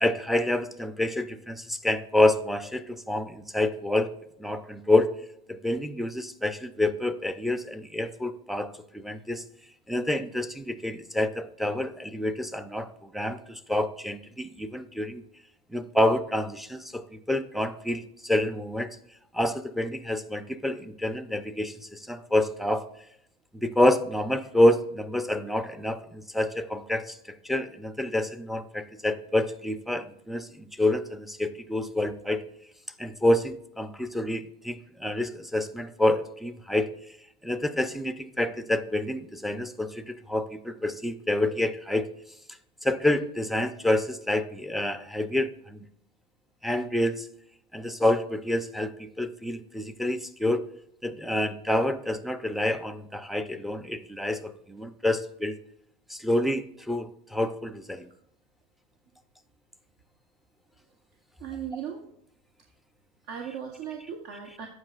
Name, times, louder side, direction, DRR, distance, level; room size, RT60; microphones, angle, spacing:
voice 1, 0.0-4.1 4.4-5.1 5.5-9.4 9.9-15.2 15.7-18.9 19.3-22.9 23.5-32.4 33.0-36.9 37.4-42.1 42.8-45.8 46.6-47.3 47.7-50.6 51.0-55.6 56.1-58.1, left 1 dB, ahead, 9 dB, 0.5 m, -27 dB
voice 2, 61.4-62.0 63.3-64.7, right 8 dB, 60° right, 2 dB, 0.9 m, -37 dB
13.5 x 4.7 x 2.4 m, 0.76 s
supercardioid pair, 110°, 20 cm